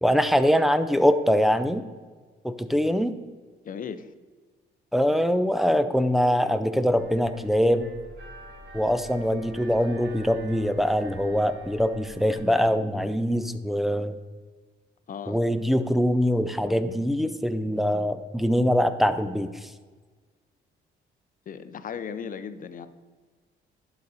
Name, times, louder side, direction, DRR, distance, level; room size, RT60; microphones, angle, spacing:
voice 1, 0.0-1.8 2.4-3.1 4.9-7.9 8.7-14.2 15.3-19.5, equal, ahead, 10 dB, 0.4 m, -23 dB
voice 2, 3.6-4.1 15.1-15.4 21.5-22.9, left 7 dB, 45° left, 12 dB, 0.6 m, -36 dB
sound 1, 6.9-12.4, equal, 60° right, 1.5 m, -46 dB
11.5 x 4.1 x 4.1 m, 1.4 s
cardioid pair, 90°, 20 cm